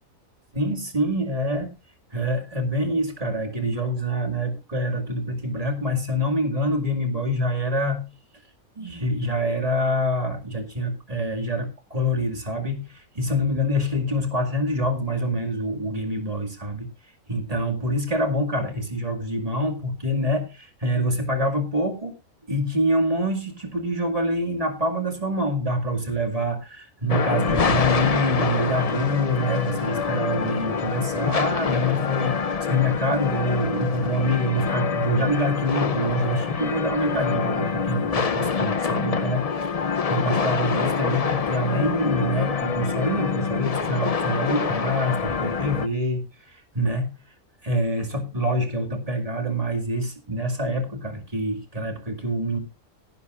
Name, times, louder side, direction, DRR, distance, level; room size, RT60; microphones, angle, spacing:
voice 1, 0.5-1.7 2.1-8.1 8.8-16.9 17.3-22.1 22.5-47.2 47.6-52.6, equal, 25° right, 4 dB, 2.2 m, -26 dB
sound 1, 27.1-45.9, left 5 dB, 40° left, 0.5 m, -26 dB
17.0 x 11.0 x 2.5 m, 0.27 s
omnidirectional pair, 1.5 m